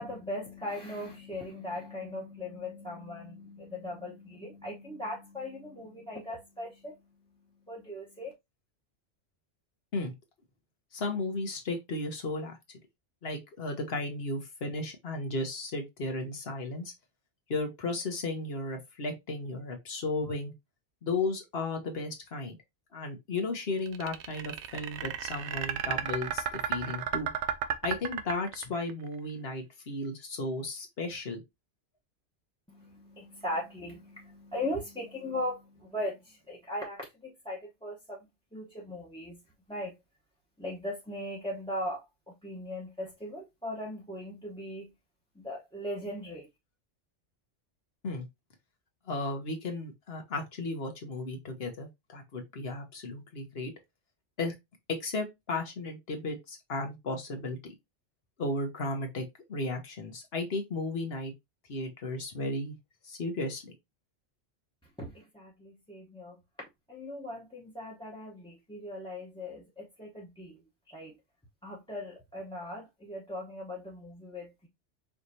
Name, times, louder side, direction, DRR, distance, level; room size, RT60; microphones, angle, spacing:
voice 1, 0.0-8.3 32.7-39.4 39.7-39.9 40.6-44.9 45.3-46.5 65.0-66.4 66.9-71.2 71.6-74.7, left 1 dB, 5° left, 0.9 m, -39 dB
voice 2, 10.9-12.6 13.2-16.9 17.5-20.5 21.0-22.6 22.9-27.3 27.8-31.4 48.0-48.3 49.1-53.7 54.4-54.5 54.9-57.7 58.4-59.2 59.5-61.3 61.7-62.8 63.0-63.7, left 2 dB, 60° left, 1.3 m, -34 dB
sound 1, 23.9-28.9, right 9 dB, 75° right, 0.9 m, -33 dB
4.9 x 3.2 x 2.7 m
omnidirectional pair, 1.2 m